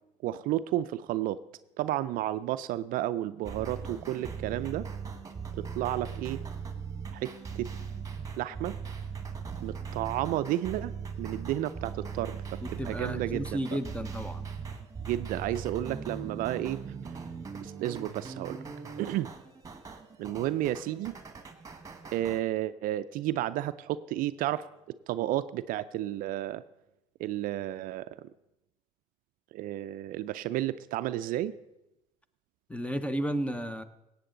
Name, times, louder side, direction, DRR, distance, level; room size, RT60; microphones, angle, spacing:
voice 1, 0.2-1.4 1.8-4.9 5.6-6.4 7.1-7.7 8.4-8.8 9.6-10.9 11.2-12.4 12.7-13.6 15.0-16.8 17.6-18.6 19.0-19.3 20.2-21.2 22.1-26.6 27.2-28.1 29.5-31.5, right 14 dB, 60° right, 14 dB, 0.4 m, -32 dB
sound 1, 3.4-22.4, right 6 dB, 20° right, 1.5 m, -40 dB
voice 2, 12.6-14.5 32.7-33.8, equal, 5° left, 12 dB, 0.9 m, -33 dB
17.5 x 8.2 x 3.8 m, 0.91 s
hypercardioid pair, 75°, 17 cm